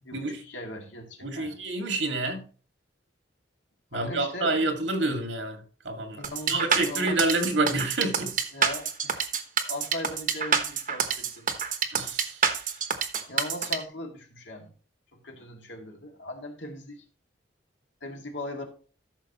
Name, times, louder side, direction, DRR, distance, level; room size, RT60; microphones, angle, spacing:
voice 1, 0.0-1.6 3.9-4.6 6.2-7.2 8.5-9.3 9.7-11.5 13.3-14.7 15.1-17.0 18.0-18.7, left 1 dB, 80° left, 2.3 m, -39 dB
voice 2, 1.2-2.4 3.9-8.3 11.9-12.4, right 2 dB, 85° right, 2.1 m, -28 dB
sound 1, 6.2-13.8, right 6 dB, 45° right, 1.0 m, -27 dB
13.5 x 6.4 x 3.0 m
head